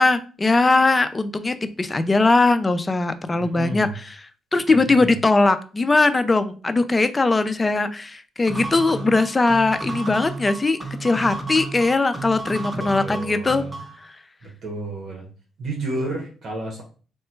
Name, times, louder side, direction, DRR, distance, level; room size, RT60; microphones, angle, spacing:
voice 1, 0.0-3.9 4.5-13.6 14.0-14.1, left 3 dB, 25° left, 10 dB, 0.4 m, -20 dB
voice 2, 3.4-4.0 4.7-5.1 12.8-13.8 14.4-15.3 15.6-16.8, right 2 dB, 60° right, 0 dB, 1.0 m, -31 dB
sound 1, 8.5-14.0, right 2 dB, 10° right, 0.7 m, -33 dB
3.7 x 2.2 x 4.4 m, 0.38 s
cardioid pair, 90°, 0 cm